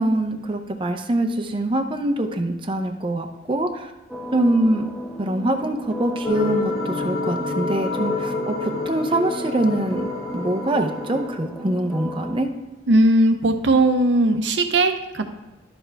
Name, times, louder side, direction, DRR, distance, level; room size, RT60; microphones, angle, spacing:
voice 1, 0.0-3.9 4.3-4.9 5.2-10.1 10.3-12.5, right 1 dB, 30° right, 4 dB, 0.6 m, -24 dB
sound 1, 4.1-12.4, right 1 dB, 5° left, 1.0 m, -35 dB
sound 2, 6.2-11.3, left 3 dB, 55° left, 1.0 m, -28 dB
voice 2, 12.9-15.3, right 1 dB, 75° right, 7 dB, 0.7 m, -18 dB
11.0 x 6.6 x 3.4 m, 1.1 s
head